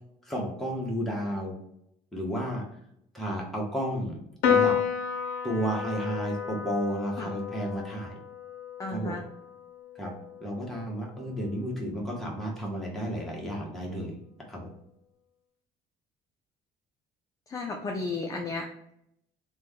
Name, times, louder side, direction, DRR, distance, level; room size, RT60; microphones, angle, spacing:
voice 1, 0.3-1.5 2.1-2.6 3.1-4.2 4.5-4.8 5.4-8.2 8.9-9.2 9.9-10.1 10.4-14.2 14.5-14.7, equal, ahead, -3 dB, 1.1 m, -32 dB
Piano, 4.4-11.1, left 7 dB, 90° left, 0.5 m, -31 dB
voice 2, 8.8-9.2 17.5-18.9, left 3 dB, 20° left, 2 dB, 0.4 m, -34 dB
3.3 x 2.2 x 3.5 m, 0.74 s
cardioid pair, 110°, 17 cm